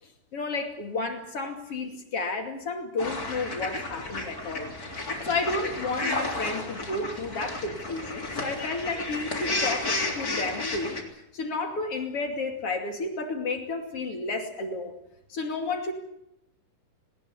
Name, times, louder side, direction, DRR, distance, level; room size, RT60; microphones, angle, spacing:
voice 1, 0.0-4.7 5.1-15.0 15.3-15.9, left 3 dB, 45° left, 5 dB, 3.2 m, -32 dB
sound 1, 3.0-11.0, left 2 dB, 25° left, 3.7 m, -32 dB
20.0 x 20.0 x 8.4 m, 0.82 s
omnidirectional pair, 4.0 m